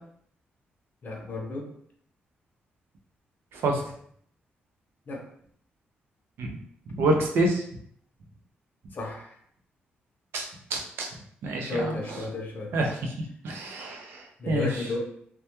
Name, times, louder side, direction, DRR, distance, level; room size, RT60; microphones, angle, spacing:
voice 1, 1.0-1.7 5.1-5.2 8.9-9.4 11.6-12.7 14.4-15.0, left 2 dB, 50° left, 1 dB, 0.6 m, -33 dB
voice 2, 6.9-7.6 10.3-10.5 10.7-11.1 11.4-12.2 12.7-13.1 13.4-14.7, right 2 dB, 80° right, 2 dB, 0.5 m, -27 dB
2.2 x 2.2 x 2.9 m, 0.64 s
cardioid pair, 80°, 4 cm